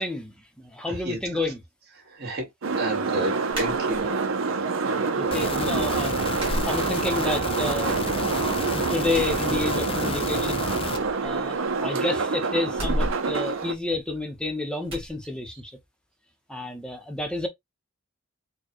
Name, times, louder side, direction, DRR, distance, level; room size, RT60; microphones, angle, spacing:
voice 1, 0.0-1.6 4.9-10.7 11.2-15.8 16.5-17.5, left 2 dB, 5° left, 0.8 m, -30 dB
voice 2, 0.9-1.2 2.0-2.5 2.8-4.1, right 1 dB, 50° right, 1.9 m, -30 dB
sound 1, 2.6-13.7, right 4 dB, 75° right, 0.6 m, -27 dB
sound 2, 3.5-4.4 4.8-5.5 5.7-5.9 6.3-7.5 7.8-8.6 9.0-10.2 10.4-10.5 10.9-12.0 12.7-14.4 14.9-15.1, equal, 25° right, 1.9 m, -34 dB
sound 3, 5.3-11.0, left 4 dB, 25° left, 0.4 m, -32 dB
4.4 x 2.3 x 2.9 m
head